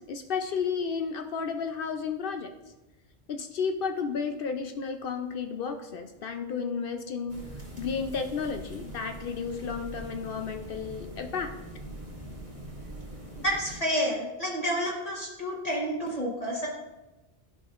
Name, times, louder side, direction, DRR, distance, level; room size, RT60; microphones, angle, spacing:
voice 1, 0.0-2.5 3.3-7.4 7.8-11.5, left 5 dB, 65° left, 6 dB, 0.7 m, -32 dB
sound 1, 7.3-13.8, right 1 dB, 45° right, 2.2 m, -43 dB
voice 2, 13.4-16.7, equal, 35° left, -4 dB, 1.2 m, -29 dB
11.5 x 5.9 x 2.4 m, 1.1 s
omnidirectional pair, 1.1 m